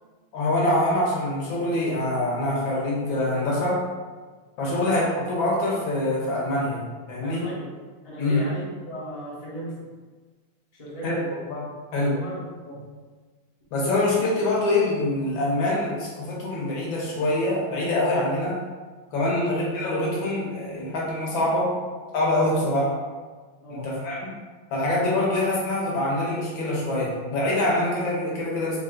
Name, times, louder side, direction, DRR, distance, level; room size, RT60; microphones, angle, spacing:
voice 1, 0.3-3.8 4.6-7.4 8.2-8.4 11.0-11.7 11.9-12.2 13.7-18.6 19.1-21.7 22.1-22.9 23.7-24.2 24.7-28.8, left 1 dB, 70° left, -4 dB, 1.5 m, -25 dB
voice 2, 7.2-7.7 8.0-9.9 10.7-11.3 12.1-12.9 19.3-19.5 21.7-21.8 22.5-22.7 23.6-23.9, right 1 dB, 30° left, -8 dB, 0.7 m, -37 dB
4.1 x 2.2 x 3.6 m, 1.4 s
omnidirectional pair, 2.3 m